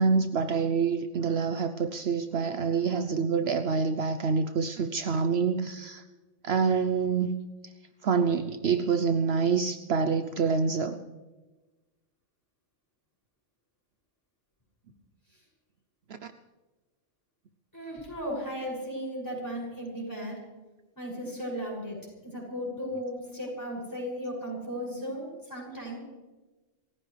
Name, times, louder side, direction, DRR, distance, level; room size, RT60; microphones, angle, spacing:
voice 1, 0.0-6.0 6.4-7.3 8.0-11.0, right 5 dB, 65° right, 9 dB, 0.9 m, -26 dB
voice 2, 17.7-20.4 21.0-26.0, equal, 15° left, -5 dB, 6.8 m, -36 dB
28.0 x 15.0 x 3.3 m, 1.2 s
omnidirectional pair, 1.2 m